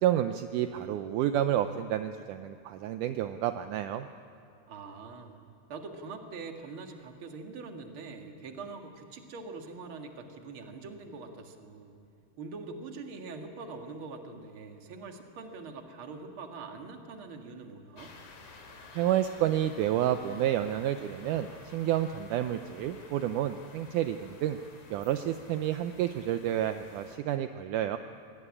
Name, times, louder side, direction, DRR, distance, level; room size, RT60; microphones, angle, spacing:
voice 1, 0.0-4.1 18.9-24.6 24.9-28.0, right 11 dB, 75° right, 9 dB, 2.1 m, -30 dB
voice 2, 4.7-5.4 5.7-12.0 12.4-18.1, right 4 dB, 45° right, 4 dB, 2.3 m, -43 dB
sound 1, 18.0-27.2, left 3 dB, 70° left, 4.2 m, -52 dB
25.0 x 18.0 x 9.8 m, 2.6 s
omnidirectional pair, 3.8 m